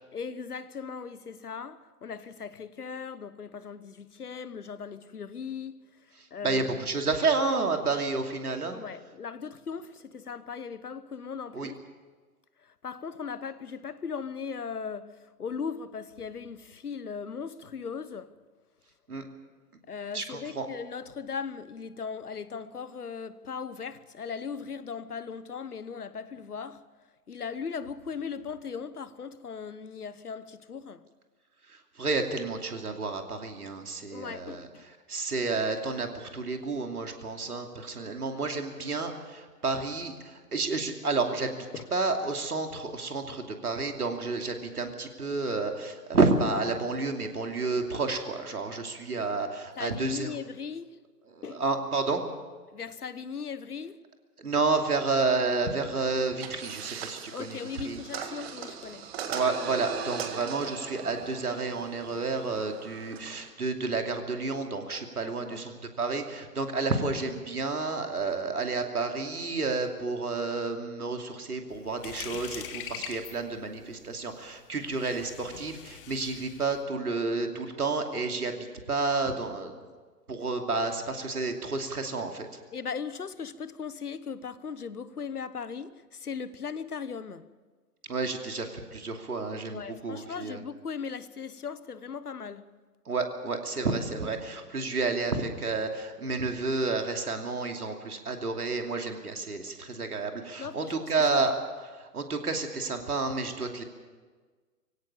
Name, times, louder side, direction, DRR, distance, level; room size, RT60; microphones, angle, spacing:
voice 1, 0.1-5.8 6.3-6.6 8.7-11.8 12.8-15.1 15.4-18.3 19.9-26.8 27.3-31.0 34.1-34.8 49.8-51.0 51.4-51.6 52.7-54.0 57.3-59.1 65.2-65.6 82.7-87.5 89.7-92.6 100.6-101.1, left 6 dB, 70° left, 1.2 m, -38 dB
voice 2, 6.2-8.8 11.5-11.7 19.1-19.3 20.1-20.7 31.7-41.5 41.9-50.3 51.3-52.2 54.4-58.0 59.2-79.7 80.3-82.5 88.1-90.6 93.1-103.8, right 3 dB, 70° right, 2.8 m, -30 dB
sound 1, 56.4-63.5, right 7 dB, 40° right, 2.0 m, -39 dB
sound 2, 71.7-76.8, left 9 dB, 35° left, 1.8 m, -43 dB
23.5 x 17.0 x 7.1 m
figure-of-eight pair, 120°, 46 cm